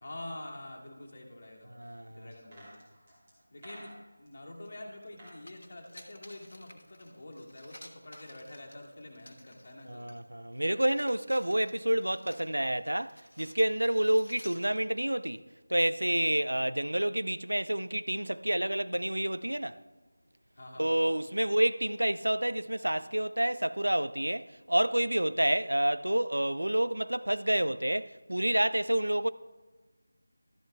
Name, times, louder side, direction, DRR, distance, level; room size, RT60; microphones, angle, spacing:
voice 1, 0.0-2.8 3.5-3.9 4.2-10.1 10.5-10.8 20.6-21.2, left 1 dB, 45° left, 1.7 m, -46 dB
voice 2, 1.7-2.3 9.9-15.4 15.7-19.8 20.8-29.3, right 1 dB, 75° right, 0.4 m, -29 dB
sound 1, 2.3-4.3 5.0-5.4 5.7-7.1 7.3-7.4, right 1 dB, 25° right, 2.8 m, -53 dB
sound 2, 4.6-4.7 5.0-10.2 10.6-14.8, left 1 dB, 65° left, 1.2 m, -54 dB
12.5 x 11.0 x 2.3 m
figure-of-eight pair, 165°, 0 cm